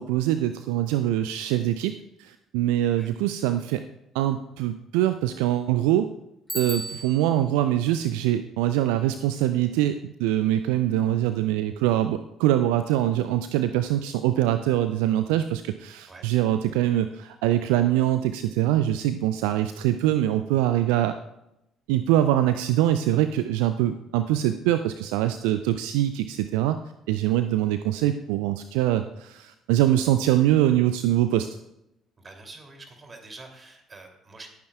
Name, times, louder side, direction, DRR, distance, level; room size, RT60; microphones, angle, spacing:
voice 1, 0.0-1.9 2.2-3.8 4.1-6.1 6.5-21.2 21.9-26.8 27.1-31.6, right 13 dB, 70° right, 11 dB, 0.4 m, -23 dB
Bicycle bell, 6.5-7.5, right 1 dB, ahead, 4.5 m, -35 dB
voice 2, 32.2-34.5, right 3 dB, 30° right, 3 dB, 2.7 m, -46 dB
18.5 x 9.4 x 2.3 m, 0.85 s
figure-of-eight pair, 50°, 0 cm